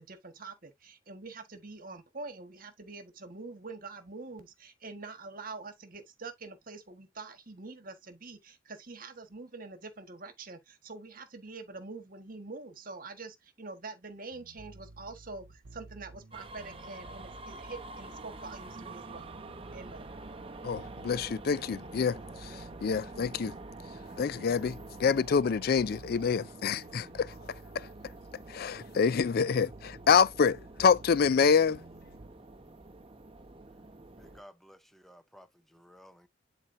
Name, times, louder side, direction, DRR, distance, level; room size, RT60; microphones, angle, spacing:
voice 1, 0.0-19.3 19.7-20.1, right 3 dB, 50° right, 1.5 m, -45 dB
sound 1, 14.3-32.3, right 2 dB, 80° right, 0.7 m, -53 dB
sound 2, 16.3-34.4, right 2 dB, 30° right, 0.9 m, -47 dB
voice 2, 20.6-22.2 22.8-23.5 24.2-27.3 27.8-27.9 28.5-31.8, left 6 dB, 50° left, 0.4 m, -26 dB
voice 3, 34.2-36.3, equal, ahead, 0.8 m, -55 dB
11.0 x 4.2 x 2.6 m
head